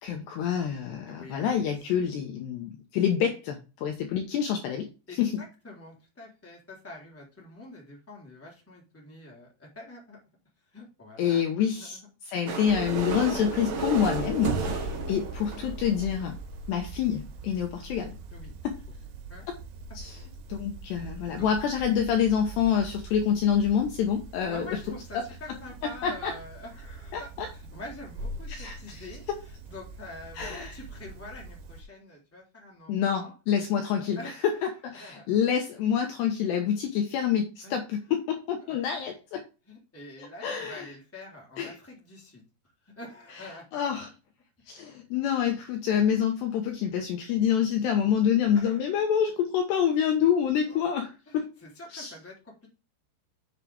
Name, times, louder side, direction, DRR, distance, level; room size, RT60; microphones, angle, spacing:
voice 1, 0.0-4.9 5.2-5.4 11.2-12.0 12.2-16.4 16.7-18.1 18.6-18.8 20.0-20.2 20.5-24.7 26.0-26.3 27.1-27.5 28.5-29.0 30.4-30.7 32.9-34.2 34.8-39.4 40.4-40.9 41.6-41.8 43.7-44.1 44.7-51.5 51.9-52.1, left 8 dB, 75° left, 4 dB, 2.7 m, -27 dB
voice 2, 1.1-1.7 5.1-10.2 10.7-11.4 11.7-12.1 14.6-14.8 18.3-18.6 19.3-19.5 21.3-21.5 24.4-33.3 34.1-35.3 37.6-37.8 38.6-38.7 39.7-42.4 42.8-43.9 48.5-48.8 50.7-51.0 51.3-52.7, left 2 dB, 5° left, -2 dB, 2.4 m, -46 dB
sound 1, 12.5-16.3 17.0-17.1 17.3-17.4 17.5-17.7 18.0-18.1, right 4 dB, 60° right, 2.4 m, -34 dB
sound 2, 12.7-31.8, right 3 dB, 90° right, 4.0 m, -41 dB
8.2 x 7.1 x 3.5 m, 0.31 s
omnidirectional pair, 5.8 m